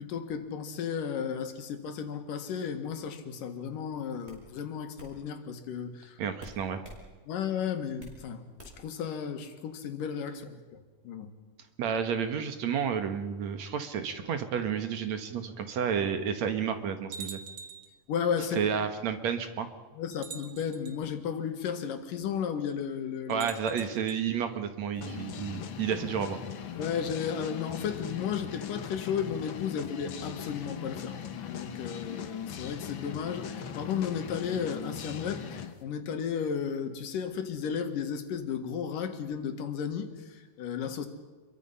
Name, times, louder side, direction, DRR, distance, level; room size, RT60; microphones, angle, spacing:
voice 1, 0.0-6.2 7.2-8.5 8.8-11.3 18.1-18.7 19.9-23.5 26.7-41.1, left 7 dB, 85° left, 7 dB, 3.3 m, -34 dB
sound 1, 3.5-3.7 4.3-4.4 5.0-5.1 6.4-7.0 7.4-8.2 8.6-8.9, equal, 20° right, 5.9 m, -49 dB
voice 2, 6.2-6.8 11.8-17.4 18.5-19.7 23.3-26.4, right 7 dB, 65° right, 8 dB, 2.5 m, -31 dB
sound 2, 17.1-18.0 19.1-19.2 20.1-21.0 23.3-24.2, right 5 dB, 45° right, 1.9 m, -44 dB
sound 3, 25.0-35.7, left 8 dB, 60° left, 1.4 m, -40 dB
28.0 x 23.0 x 5.6 m, 1.3 s
omnidirectional pair, 3.7 m